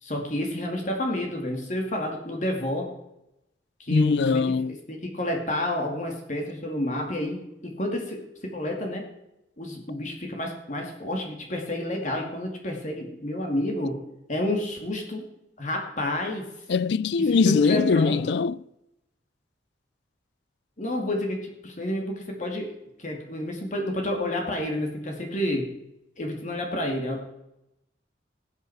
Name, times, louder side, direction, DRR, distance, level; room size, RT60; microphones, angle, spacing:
voice 1, 0.0-2.9 3.8-9.1 9.6-14.0 14.3-15.3 15.6-16.5 17.5-18.3 20.8-25.7 26.2-27.3, left 1 dB, 40° left, 2.3 m, -30 dB
voice 2, 3.9-4.8 16.7-18.6, left 5 dB, 65° left, 0.4 m, -22 dB
19.0 x 8.4 x 4.7 m
head